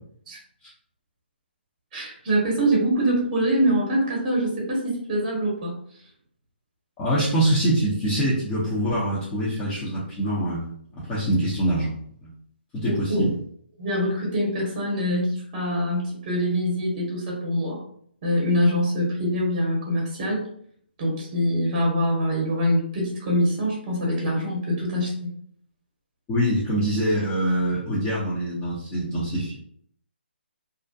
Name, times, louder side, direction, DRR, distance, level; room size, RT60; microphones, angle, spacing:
voice 1, 1.9-5.7 12.8-13.3 13.8-17.8 18.2-20.5 21.0-25.3, equal, 30° right, -2 dB, 0.9 m, -24 dB
voice 2, 7.0-11.9 12.2-12.3 12.7-13.3 26.3-29.6, right 1 dB, 15° left, -9 dB, 0.6 m, -24 dB
2.4 x 2.1 x 2.6 m, 0.63 s
hypercardioid pair, 150°, 6 cm